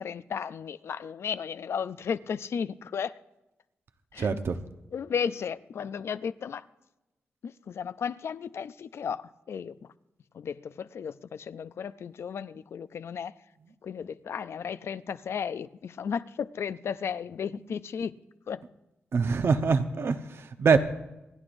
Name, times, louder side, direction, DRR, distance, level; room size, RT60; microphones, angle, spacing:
voice 1, 0.0-3.1 4.1-4.3 4.9-6.6 7.4-9.9 10.3-13.3 13.8-18.1 18.5-18.6, left 7 dB, 70° left, 0.4 m, -34 dB
voice 2, 4.2-4.6 19.1-20.8, right 5 dB, 65° right, 0.9 m, -24 dB
28.0 x 9.8 x 2.6 m
cardioid pair, 65°, 5 cm